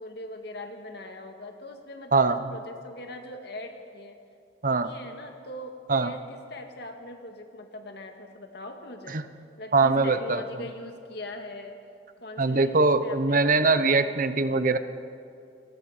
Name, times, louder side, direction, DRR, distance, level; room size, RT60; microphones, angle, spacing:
voice 1, 0.0-4.2 4.8-9.2 9.6-11.8 12.2-14.1 14.4-14.6, left 1 dB, 60° left, 5 dB, 2.0 m, -41 dB
voice 2, 4.6-4.9 5.9-6.1 9.1-9.2 9.7-10.4 12.4-14.8, right 3 dB, 45° right, 11 dB, 0.9 m, -22 dB
28.5 x 19.5 x 5.1 m, 2.5 s
head